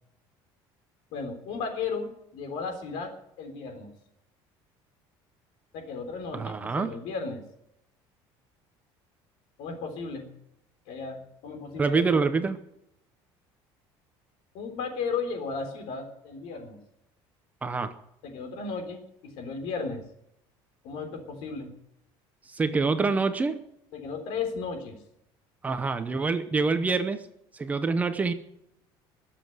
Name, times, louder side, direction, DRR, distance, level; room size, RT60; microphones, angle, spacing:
voice 1, 1.1-3.9 5.7-7.4 9.6-10.3 10.9-12.2 14.5-16.8 18.2-20.0 20.8-21.7 23.9-25.0, left 5 dB, 65° left, 6 dB, 3.7 m, -35 dB
voice 2, 6.3-6.9 11.8-12.6 17.6-17.9 22.5-23.6 25.6-27.2 27.5-28.3, right 4 dB, 15° right, 9 dB, 0.8 m, -26 dB
21.5 x 7.5 x 7.9 m, 0.78 s
cardioid pair, 165°, 10 cm